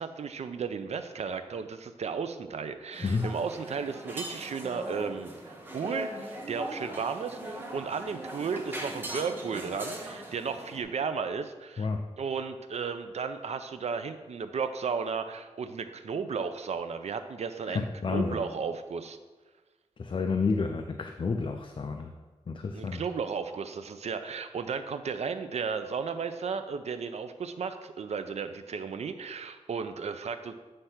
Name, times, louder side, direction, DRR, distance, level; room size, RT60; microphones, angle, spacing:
voice 1, 0.0-11.9 12.2-19.2 22.7-30.5, right 5 dB, 80° right, 9 dB, 0.5 m, -34 dB
sound 1, 2.9-10.8, right 1 dB, 20° right, 1.1 m, -40 dB
voice 2, 17.7-18.4 20.0-22.1 22.5-23.0, left 4 dB, 50° left, 5 dB, 0.4 m, -30 dB
7.6 x 3.3 x 5.7 m, 1.3 s
wide cardioid pair, 110°, 11 cm